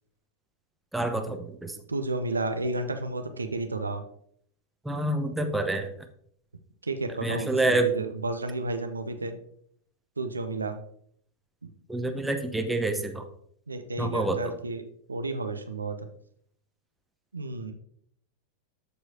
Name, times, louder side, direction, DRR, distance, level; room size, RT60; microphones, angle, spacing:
voice 1, 0.9-1.8 4.8-5.9 7.2-7.9 11.9-13.2 14.0-14.6, right 2 dB, 5° right, 5 dB, 1.0 m, -27 dB
voice 2, 1.9-4.0 6.8-9.4 10.2-10.8 13.7-14.8 15.1-16.0 17.3-17.7, right 2 dB, 80° right, 7 dB, 0.7 m, -32 dB
13.5 x 4.8 x 2.8 m, 0.66 s
figure-of-eight pair, 90°, 0 cm